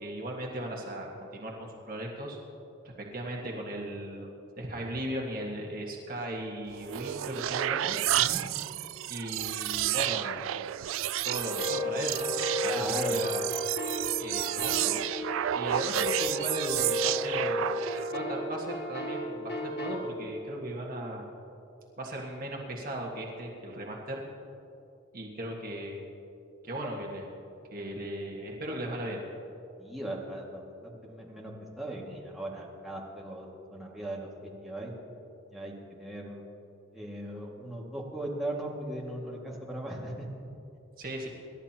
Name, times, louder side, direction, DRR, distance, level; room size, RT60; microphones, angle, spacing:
voice 1, 0.0-2.4 2.8-4.3 4.6-8.0 9.1-10.5 11.2-13.5 14.2-15.0 15.5-17.7 18.1-21.3 22.0-24.2 25.1-26.1 26.6-27.3 27.7-29.2 41.0-41.3, right 1 dB, 45° right, -1 dB, 1.6 m, -37 dB
sound 1, 6.7-18.2, right 13 dB, 75° right, 0.3 m, -31 dB
sound 2, 11.3-20.0, left 1 dB, 55° left, 2.0 m, -33 dB
voice 2, 12.6-13.1 29.8-34.9 35.5-36.4 36.9-40.4, right 1 dB, ahead, -4 dB, 2.0 m, -38 dB
27.0 x 12.0 x 2.9 m, 2.9 s
head